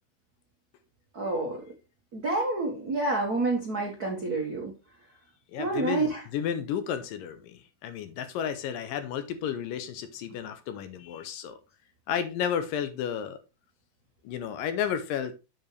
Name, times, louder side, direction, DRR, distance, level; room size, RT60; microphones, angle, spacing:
voice 1, 1.1-1.6 2.1-4.7 5.6-6.2, right 2 dB, 55° right, 1.0 m, -28 dB
voice 2, 5.5-11.6 12.1-13.4 14.2-15.4, left 8 dB, 75° left, 2.3 m, -32 dB
7.7 x 7.1 x 3.3 m
omnidirectional pair, 4.2 m